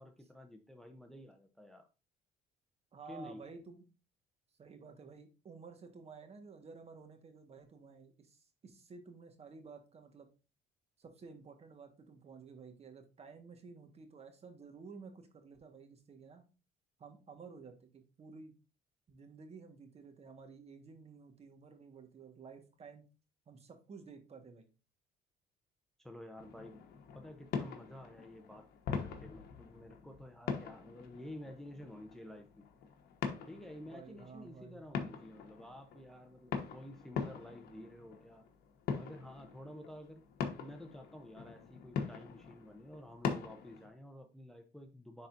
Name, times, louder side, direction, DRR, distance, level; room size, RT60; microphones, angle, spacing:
voice 1, 0.0-1.9 3.1-3.4 26.0-26.8 27.1-32.7 33.5-38.5 39.0-40.2 40.6-45.3, left 1 dB, ahead, 4 dB, 0.7 m, -51 dB
voice 2, 2.9-3.9 4.6-10.3 11.0-16.4 17.0-18.5 19.1-23.1 23.5-24.7 33.8-35.2, right 5 dB, 40° right, 6 dB, 1.5 m, -53 dB
sound 1, 26.4-43.9, left 6 dB, 70° left, 1.3 m, -43 dB
10.5 x 4.0 x 2.6 m, 0.31 s
cardioid pair, 110°, 17 cm